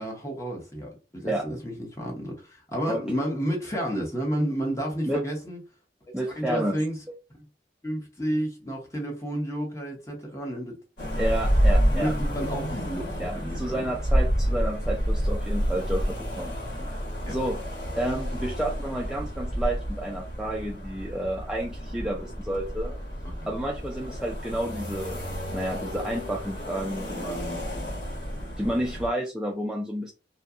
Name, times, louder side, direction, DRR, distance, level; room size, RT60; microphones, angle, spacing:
voice 1, 0.0-5.6 6.3-7.0 7.3-7.4 7.8-10.7 11.9-14.0 17.2-17.3 23.2-23.5 27.6-28.5, equal, 15° left, 0.8 m, -31 dB
voice 2, 6.1-6.7 11.2-12.1 13.2-16.5 17.3-17.6 17.9-23.0 23.5-25.2 25.5-27.6 28.6-30.1, right 1 dB, 5° right, 0.3 m, -30 dB
sound 1, 11.0-29.1, equal, 85° left, 1.4 m, -29 dB
2.7 x 2.2 x 2.4 m
head